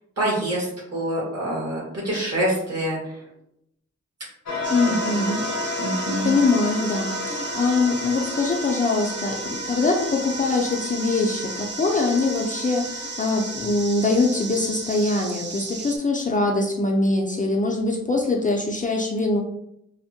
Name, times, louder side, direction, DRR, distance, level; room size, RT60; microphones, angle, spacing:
voice 1, 0.2-3.2 4.8-5.2 5.8-6.3, right 1 dB, 60° right, -5 dB, 1.5 m, -26 dB
sound 1, 4.5-15.1, left 1 dB, 65° left, 0.7 m, -33 dB
sound 2, 4.6-16.0, right 4 dB, 40° right, 0.4 m, -35 dB
voice 2, 4.7-5.4 5.9-19.4, left 3 dB, 30° left, 0 dB, 0.4 m, -23 dB
3.4 x 2.1 x 2.6 m, 0.76 s
wide cardioid pair, 110°, 29 cm